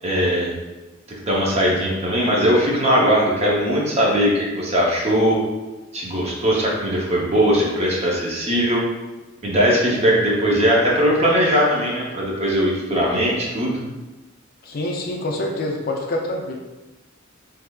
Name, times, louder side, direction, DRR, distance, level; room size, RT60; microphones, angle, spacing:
voice 1, 0.0-0.5 1.3-5.4 5.9-8.8 9.4-13.8, equal, 30° right, -3 dB, 0.6 m, -19 dB
voice 2, 14.6-16.5, left 1 dB, 50° left, 0 dB, 0.4 m, -26 dB
3.6 x 3.1 x 2.3 m, 1.1 s
head